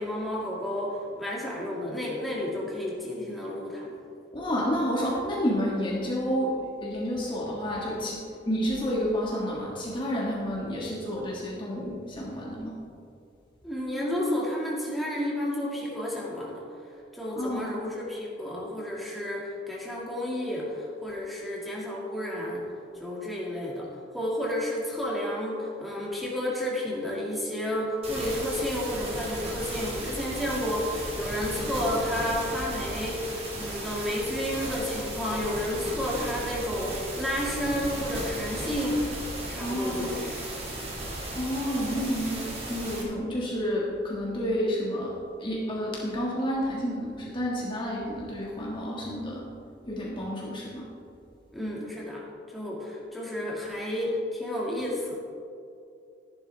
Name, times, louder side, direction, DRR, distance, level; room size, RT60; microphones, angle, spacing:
voice 1, 0.0-3.9 13.6-16.6 17.1-22.7 23.0-23.9 24.1-39.1 39.5-40.4 51.5-55.2, left 1 dB, ahead, -5 dB, 2.1 m, -31 dB
voice 2, 4.3-12.8 17.3-17.8 39.6-40.2 41.3-49.4 49.9-50.9, equal, 25° left, -5 dB, 1.7 m, -30 dB
sound 1, 28.0-43.0, right 1 dB, 30° right, 2.2 m, -35 dB
13.5 x 11.5 x 3.4 m, 2.5 s
head